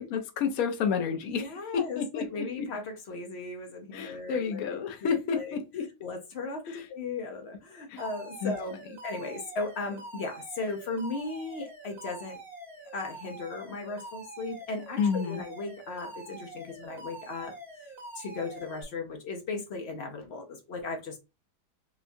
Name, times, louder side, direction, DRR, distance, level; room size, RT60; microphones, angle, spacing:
voice 1, 0.0-2.7 3.9-5.9 6.7-6.9 7.9-8.0 8.4-8.5 15.0-15.4, left 6 dB, 65° left, 1.0 m, -30 dB
voice 2, 1.3-5.6 6.0-8.8 9.0-12.4 12.9-17.5 18.1-21.2, left 3 dB, 80° left, 0.5 m, -37 dB
Alarm, 8.0-18.8, right 2 dB, ahead, 0.7 m, -45 dB
4.5 x 2.2 x 2.5 m
omnidirectional pair, 2.0 m